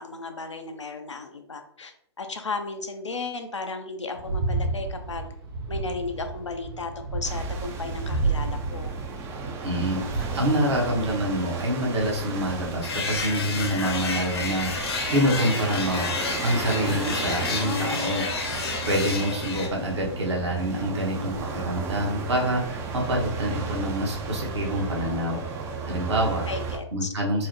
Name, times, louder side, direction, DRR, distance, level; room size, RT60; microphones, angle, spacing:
voice 1, 0.0-5.3 5.7-8.9 17.6-18.9 26.5-27.1, left 4 dB, 85° left, 6 dB, 0.6 m, -35 dB
sound 1, 4.1-15.5 16.2-16.6 17.1-17.2, right 3 dB, 50° right, 1.0 m, -33 dB
sound 2, 7.2-26.8, right 4 dB, 15° right, 0.4 m, -35 dB
voice 2, 9.6-10.0 10.3-18.3 18.8-25.4 25.8-26.5 26.9-27.5, equal, 70° right, -2 dB, 1.2 m, -26 dB
sound 3, 12.8-19.7, left 4 dB, 60° left, 0.8 m, -30 dB
4.5 x 2.0 x 3.0 m, 0.66 s
figure-of-eight pair, 120°, 15 cm